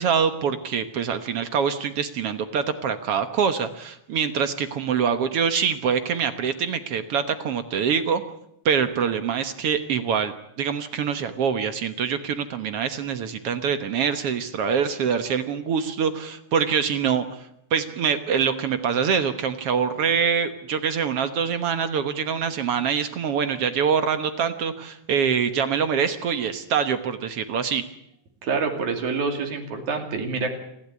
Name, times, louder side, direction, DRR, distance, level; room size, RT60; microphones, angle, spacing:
voice 1, 0.0-8.2 8.7-27.8, right 7 dB, 60° right, 10 dB, 1.9 m, -25 dB
voice 2, 28.4-30.5, right 4 dB, 80° right, 4 dB, 4.0 m, -27 dB
28.5 x 11.5 x 9.8 m, 0.77 s
omnidirectional pair, 3.4 m